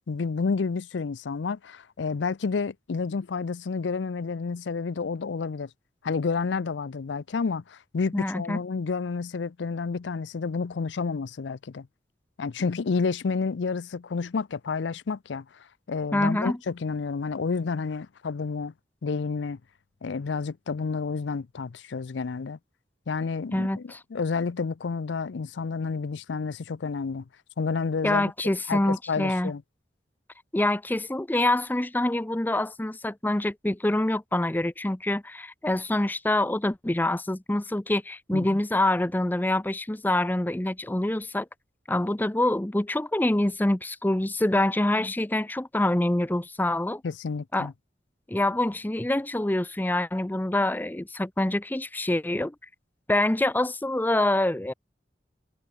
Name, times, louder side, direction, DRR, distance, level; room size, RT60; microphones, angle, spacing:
voice 1, 0.0-5.7 6.0-11.9 12.4-15.5 15.9-18.7 19.0-19.6 20.0-22.6 23.1-27.2 27.6-28.3 28.7-29.6 38.3-38.6 47.0-47.7, left 4 dB, 80° left, 0.5 m, -30 dB
voice 2, 8.1-8.6 16.1-16.6 23.5-24.0 28.0-29.5 30.5-41.5 41.9-47.0 47.5-47.7 48.3-52.5 53.1-54.7, left 1 dB, 10° left, 0.5 m, -26 dB
head